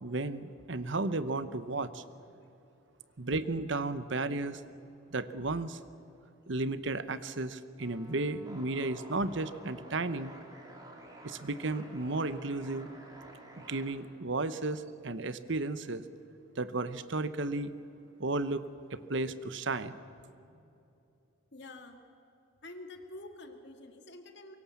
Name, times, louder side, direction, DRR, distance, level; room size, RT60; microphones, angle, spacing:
voice 1, 0.0-2.0 3.2-4.6 5.1-5.8 6.5-10.3 11.2-12.9 13.7-16.0 16.6-17.7 18.2-18.6 18.9-20.0, right 2 dB, 55° right, 13 dB, 0.9 m, -33 dB
sound 1, 7.8-13.9, right 1 dB, 20° right, 3.1 m, -51 dB
voice 2, 20.3-20.6 21.5-22.0 22.6-24.6, left 2 dB, 55° left, 5 dB, 2.1 m, -48 dB
24.5 x 23.0 x 7.2 m, 2.8 s
head